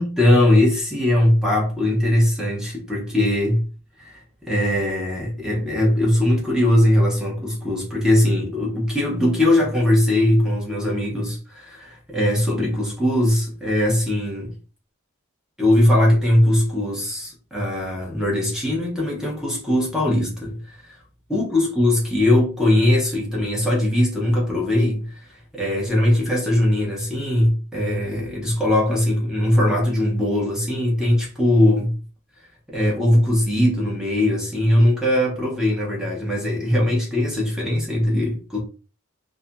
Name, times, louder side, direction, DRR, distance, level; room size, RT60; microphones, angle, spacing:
voice 1, 0.0-3.6 4.0-14.5 15.6-20.6 20.8-21.0 21.3-25.3 25.5-31.9 32.7-38.6, left 1 dB, 5° right, 0.7 m, -20 dB
2.6 x 2.5 x 2.2 m
head